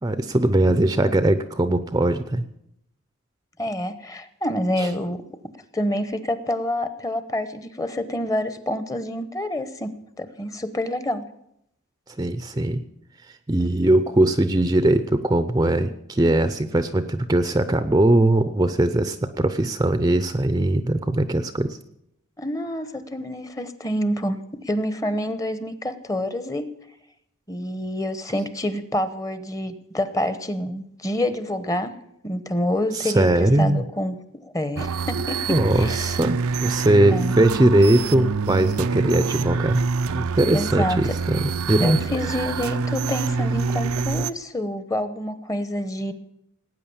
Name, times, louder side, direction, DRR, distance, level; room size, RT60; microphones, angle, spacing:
voice 1, 0.0-2.5 4.8-4.9 12.2-12.8 13.5-21.8 32.9-33.8 35.5-39.8 40.1-42.0, right 1 dB, 15° right, 11 dB, 0.6 m, -20 dB
voice 2, 3.6-5.2 5.7-11.3 22.4-26.7 27.5-31.9 32.2-35.4 35.8-36.2 37.1-37.4 40.5-41.2 41.8-46.1, left 1 dB, 15° left, 12 dB, 1.0 m, -27 dB
sound 1, 34.8-44.3, right 4 dB, 90° right, 0.5 m, -26 dB
18.5 x 9.2 x 7.1 m, 0.78 s
head